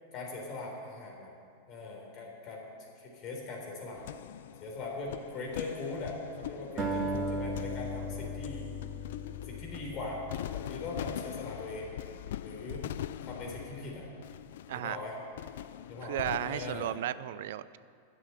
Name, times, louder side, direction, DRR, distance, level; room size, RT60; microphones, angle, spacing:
voice 1, 0.1-1.3 1.7-2.7 3.0-4.0 4.6-8.7 9.4-10.2 10.5-11.9 12.4-12.8 13.2-14.1 14.7-15.2 15.9-17.0, left 3 dB, 40° left, -1 dB, 3.9 m, -40 dB
sound 1, 4.0-17.0, left 12 dB, 70° left, 0.3 m, -42 dB
Acoustic guitar, 6.8-11.2, equal, 15° right, 2.3 m, -37 dB
voice 2, 16.0-17.8, right 12 dB, 70° right, 16 dB, 0.4 m, -34 dB
11.5 x 7.5 x 9.2 m, 2.3 s
hypercardioid pair, 115°, 0 cm